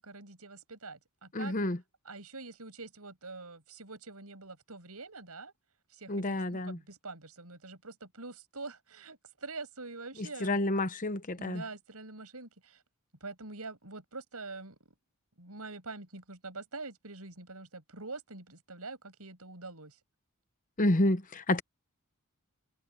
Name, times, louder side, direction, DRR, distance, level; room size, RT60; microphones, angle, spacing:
voice 1, 0.0-1.5 2.0-5.5 5.9-10.9 11.3-12.8 13.2-14.9 15.4-20.0, right 3 dB, 85° right, 6.1 m, -45 dB
voice 2, 1.3-1.8 6.1-6.8 10.4-11.6 20.8-21.6, left 1 dB, 35° left, 1.0 m, -29 dB
head